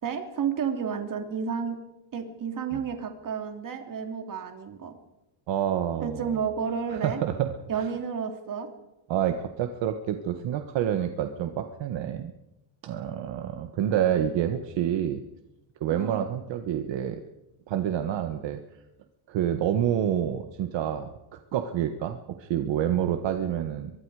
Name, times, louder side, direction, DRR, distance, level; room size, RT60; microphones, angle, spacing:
voice 1, 0.0-1.8 2.1-4.9 6.0-7.2 7.7-8.7 15.9-16.2, right 7 dB, 40° right, 5 dB, 3.1 m, -31 dB
voice 2, 5.5-6.3 6.9-7.9 9.1-12.3 12.8-15.2 15.8-17.2 17.7-18.6 19.3-23.9, right 10 dB, 65° right, 7 dB, 1.6 m, -28 dB
23.5 x 23.0 x 5.0 m, 0.93 s
cardioid pair, 150°, 48 cm